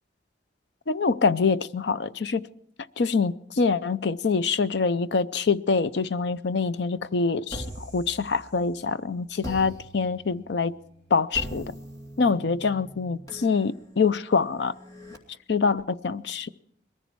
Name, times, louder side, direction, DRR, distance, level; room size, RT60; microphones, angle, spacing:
voice 1, 0.9-2.4 3.0-10.7 11.1-11.8 12.2-14.7 15.5-16.5, left 4 dB, 65° left, 0.6 m, -25 dB
sound 1, 7.5-8.9 9.4-15.2, equal, 20° left, 2.6 m, -42 dB
21.5 x 14.5 x 4.6 m
head